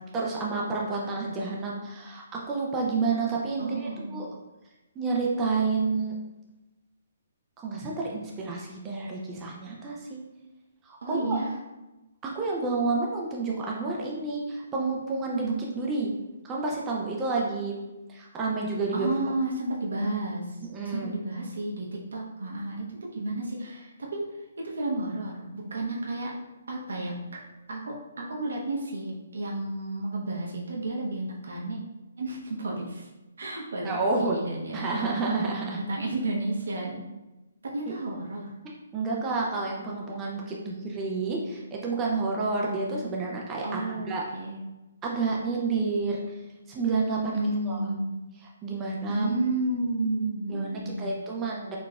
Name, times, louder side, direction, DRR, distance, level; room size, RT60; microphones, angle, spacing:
voice 1, 0.1-4.3 5.0-6.1 7.6-10.2 10.9-11.4 12.2-16.1 16.4-17.7 18.1-19.1 20.7-21.1 33.8-34.4 34.7-35.8 38.9-44.2 45.0-46.2 46.7-47.8 48.6-49.3 50.5-51.8, right 3 dB, 15° right, -2 dB, 0.4 m, -29 dB
voice 2, 3.6-4.3 11.0-11.5 18.9-24.2 24.6-26.3 26.7-27.2 27.7-31.8 32.2-33.1 33.4-35.1 35.8-37.0 37.6-38.5 43.6-44.6 47.3-48.1 49.1-51.2, right 2 dB, 80° right, -2 dB, 0.9 m, -32 dB
3.9 x 3.2 x 2.4 m, 1.0 s
hypercardioid pair, 165°, 0 cm